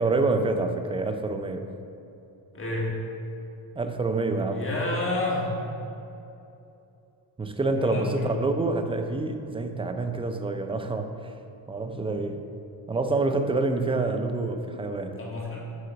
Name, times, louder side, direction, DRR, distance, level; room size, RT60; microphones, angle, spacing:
voice 1, 0.0-1.7 3.7-4.7 7.4-11.4 11.7-12.5 12.9-15.2, right 3 dB, 15° right, 6 dB, 0.4 m, -27 dB
voice 2, 2.5-2.9 4.5-5.5 7.7-8.3 15.2-15.6, left 2 dB, 30° left, -4 dB, 1.6 m, -29 dB
7.8 x 3.8 x 5.1 m, 2.7 s
cardioid pair, 105°, 40 cm